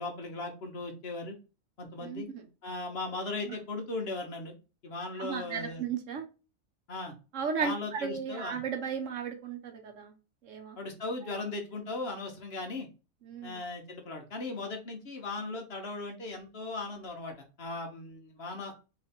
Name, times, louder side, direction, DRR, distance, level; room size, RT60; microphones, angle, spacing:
voice 1, 0.0-1.4 1.8-2.3 2.6-4.5 4.8-5.9 6.9-7.1 7.6-8.6 10.8-12.9 13.4-18.7, left 3 dB, 50° left, 3 dB, 1.1 m, -38 dB
voice 2, 2.0-2.4 3.5-3.6 5.2-6.2 7.3-10.1 10.4-10.8 13.2-13.6, right 6 dB, 65° right, 4 dB, 1.2 m, -35 dB
3.3 x 3.2 x 4.2 m, 0.31 s
omnidirectional pair, 1.4 m